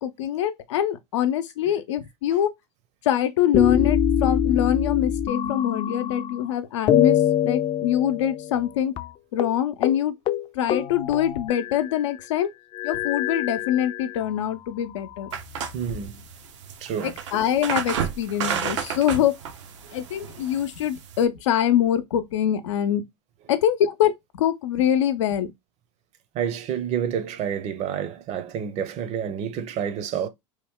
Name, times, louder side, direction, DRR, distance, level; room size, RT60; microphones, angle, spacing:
voice 1, 0.0-2.5 3.0-7.2 7.4-8.9 9.3-10.1 10.5-12.5 12.8-15.3 17.0-19.3 19.9-23.0 23.5-25.5, left 10 dB, 85° left, 0.6 m, -24 dB
sound 1, 3.5-6.5 6.9-8.7 9.0-9.1 9.4-9.6 9.8-10.0 10.3-12.0 12.7-14.3 15.0-15.9, left 10 dB, 35° left, 0.4 m, -25 dB
sound 2, 15.3-21.2, right 7 dB, 85° right, 0.8 m, -32 dB
voice 2, 15.7-16.2 16.8-17.2 19.8-19.9 26.3-30.3, right 8 dB, 50° right, 0.7 m, -29 dB
3.1 x 2.2 x 3.6 m
hypercardioid pair, 100°, 15 cm